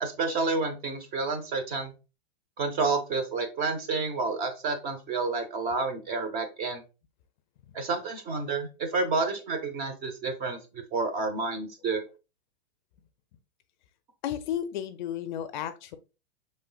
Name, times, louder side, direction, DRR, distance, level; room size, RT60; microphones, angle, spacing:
voice 1, 0.0-1.9 2.6-6.8 7.7-12.0, right 4 dB, 25° right, 7 dB, 0.7 m, -30 dB
voice 2, 14.2-16.0, left 10 dB, 45° left, 11 dB, 0.4 m, -33 dB
5.2 x 3.2 x 2.3 m, 0.31 s
hypercardioid pair, 140°, 33 cm